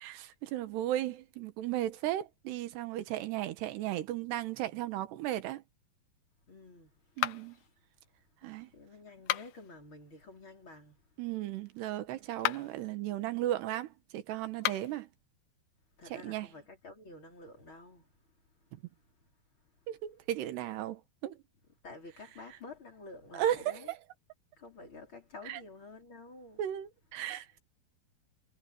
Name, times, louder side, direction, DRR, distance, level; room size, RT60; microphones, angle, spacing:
voice 1, 0.0-5.6 7.2-7.6 8.4-8.7 11.2-15.1 16.1-16.5 19.9-21.4 22.5-22.6 23.3-24.0 25.5-25.6 26.6-27.6, right 13 dB, 85° right, 3.4 m, -35 dB
voice 2, 6.5-6.9 7.5-7.6 8.7-11.0 16.0-18.0 21.8-23.9 24.6-26.6, left 3 dB, 30° left, 5.0 m, -50 dB
sound 1, 7.2-7.7 9.1-9.7 12.3-12.8 14.5-15.0, left 15 dB, 80° left, 1.9 m, -34 dB
omnidirectional pair, 4.7 m